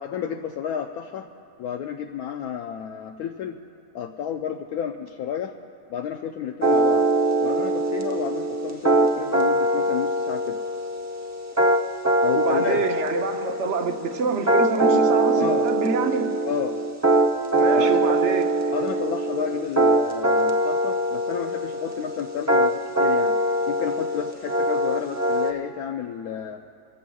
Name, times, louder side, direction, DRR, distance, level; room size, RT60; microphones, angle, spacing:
voice 1, 0.0-1.3 1.6-3.6 3.9-5.5 5.9-7.1 7.4-10.6 12.2-12.8 15.4-15.7 16.4-16.8 17.7-18.2 18.7-23.4 23.7-26.6, left 8 dB, 75° left, 4 dB, 1.0 m, -31 dB
sound 1, 6.6-25.5, right 1 dB, 20° right, 0.4 m, -22 dB
voice 2, 12.3-16.3 17.5-18.5, right 5 dB, 55° right, 5 dB, 1.0 m, -26 dB
29.0 x 14.5 x 2.3 m, 2.4 s
omnidirectional pair, 1.7 m